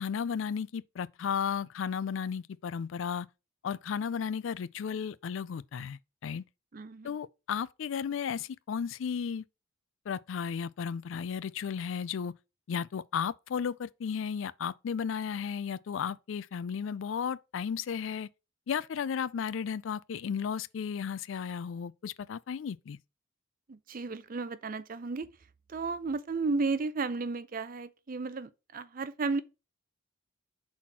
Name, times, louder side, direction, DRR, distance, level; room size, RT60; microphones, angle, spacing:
voice 1, 0.0-3.3 3.6-6.4 7.0-9.4 10.1-12.3 12.7-18.3 18.7-23.0, left 7 dB, 70° left, 0.4 m, -34 dB
voice 2, 6.7-7.2 23.7-25.3 25.7-29.4, right 3 dB, 45° right, 0.5 m, -33 dB
5.8 x 4.2 x 4.6 m
head